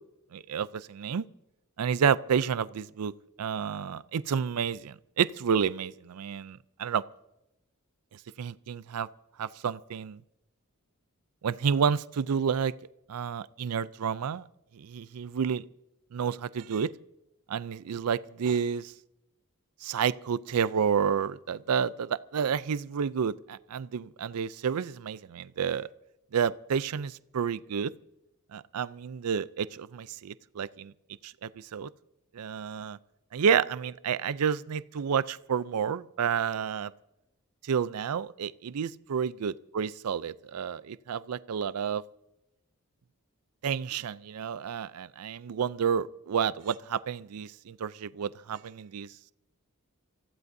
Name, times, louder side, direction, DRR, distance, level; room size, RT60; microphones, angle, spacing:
voice 1, 0.3-1.3 1.8-3.1 3.4-7.0 8.1-9.1 9.4-10.2 11.4-12.7 13.1-14.5 14.7-15.6 16.1-16.9 17.5-18.9 19.8-25.9 26.3-27.9 28.5-30.9 31.2-31.9 32.3-33.0 33.3-36.9 37.6-42.0 43.6-49.1, right 7 dB, 85° right, 17 dB, 0.4 m, -30 dB
27.5 x 15.0 x 2.7 m, 0.90 s
head